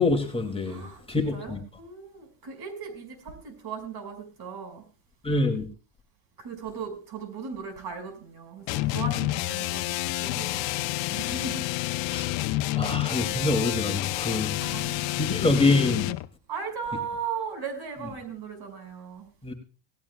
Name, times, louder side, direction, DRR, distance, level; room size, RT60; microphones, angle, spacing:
voice 1, 0.0-1.6 5.2-5.6 12.1-12.3 12.8-14.5 15.2-16.1 19.4-19.5, left 3 dB, 15° left, 4 dB, 2.6 m, -25 dB
voice 2, 0.7-4.8 6.4-11.7 14.5-15.1 16.5-19.3, right 6 dB, 55° right, 6 dB, 5.8 m, -37 dB
sound 1, 8.7-16.3, left 18 dB, 75° left, 0.8 m, -29 dB
18.5 x 16.0 x 2.3 m, 0.37 s
cardioid pair, 105°, 45 cm